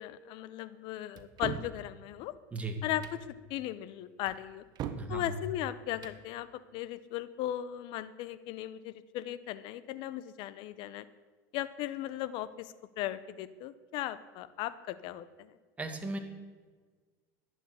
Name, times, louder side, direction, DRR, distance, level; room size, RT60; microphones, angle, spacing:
voice 1, 0.0-2.3 2.8-3.0 3.5-4.6 5.1-11.0 11.5-15.5, left 13 dB, 60° left, 15 dB, 0.9 m, -37 dB
sound 1, 1.2-1.7 2.9-3.2 4.3-5.1 5.9-6.2, right 9 dB, 45° right, 1.3 m, -40 dB
voice 2, 5.0-5.4 15.8-16.2, right 3 dB, 15° right, 4 dB, 2.3 m, -36 dB
11.5 x 9.1 x 9.7 m, 1.4 s
supercardioid pair, 105°, 9 cm